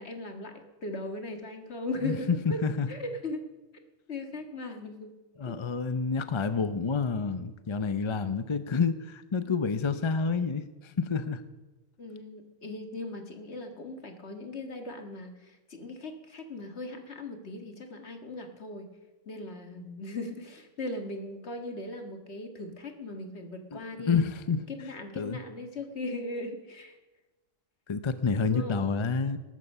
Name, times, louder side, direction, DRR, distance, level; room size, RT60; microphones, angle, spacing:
voice 1, 0.0-2.6 2.9-3.4 4.1-5.1 5.5-5.6 12.0-18.9 19.3-24.2 24.5-27.0 28.4-29.0, left 2 dB, 55° left, 6 dB, 1.9 m, -38 dB
voice 2, 2.0-2.9 5.4-11.4 23.7-23.8 24.1-24.6 25.2-25.4 27.9-29.4, left 5 dB, 35° left, 11 dB, 0.5 m, -28 dB
19.5 x 12.5 x 5.5 m, 1.1 s
omnidirectional pair, 1.4 m